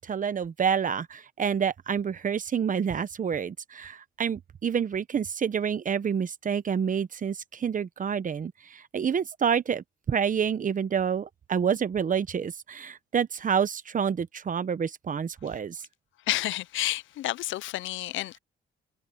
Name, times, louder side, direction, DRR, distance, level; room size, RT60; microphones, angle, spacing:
voice 1, 0.0-15.8, right 7 dB, 40° right, 1.1 m, -28 dB
voice 2, 16.3-18.4, left 15 dB, 75° left, 0.5 m, -30 dB
cardioid pair, 90°, 20 cm